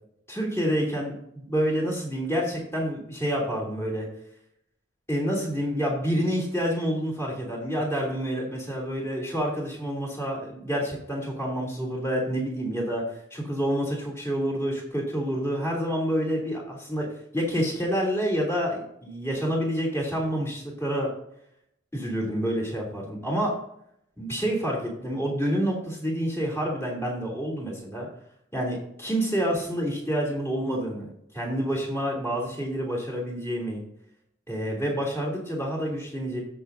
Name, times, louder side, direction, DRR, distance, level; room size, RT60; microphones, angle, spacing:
voice 1, 0.3-4.1 5.1-17.1 17.3-21.1 21.9-23.6 24.2-28.1 28.5-33.8 34.5-36.4, equal, 10° left, -3 dB, 3.2 m, -28 dB
16.0 x 6.4 x 2.8 m, 0.73 s
head